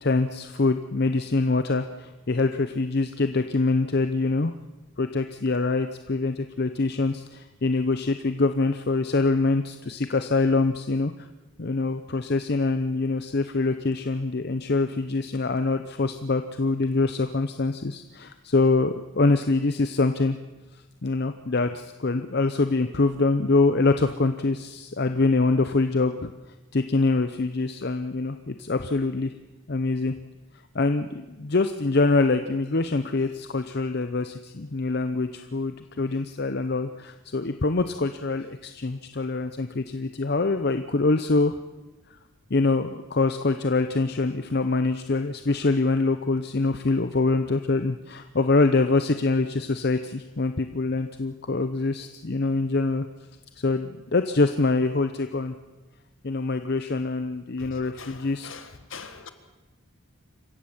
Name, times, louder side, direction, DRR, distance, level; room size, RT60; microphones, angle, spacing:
voice 1, 0.0-4.5 5.0-11.1 11.6-20.4 21.0-26.3 26.7-29.3 29.7-30.1 30.7-41.6 42.5-53.1 53.6-55.5 56.2-58.6, left 3 dB, 50° left, 0.7 m, -24 dB
voice 2, 57.6-58.2 58.4-59.3, left 5 dB, 65° left, 1.7 m, -42 dB
26.5 x 15.0 x 7.2 m
head